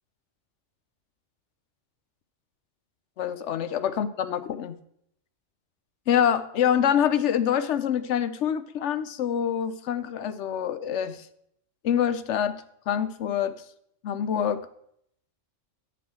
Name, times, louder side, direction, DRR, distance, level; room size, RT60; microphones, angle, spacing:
voice 1, 3.2-4.8 6.1-11.2 11.8-13.6 14.0-14.7, left 9 dB, 70° left, 12 dB, 0.9 m, -26 dB
10.0 x 4.4 x 7.6 m, 0.71 s
omnidirectional pair, 1.3 m